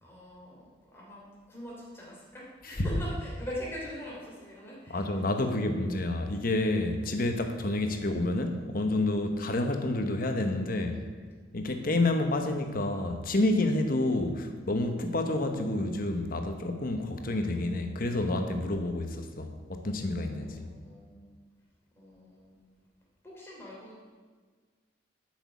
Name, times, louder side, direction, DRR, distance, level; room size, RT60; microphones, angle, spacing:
voice 1, 0.0-5.2 20.4-21.3 21.9-22.6 23.2-24.1, equal, 10° left, -5 dB, 3.0 m, -43 dB
voice 2, 4.9-11.0 11.5-20.7, left 2 dB, 45° left, 6 dB, 1.0 m, -29 dB
8.7 x 6.3 x 8.3 m, 1.5 s
head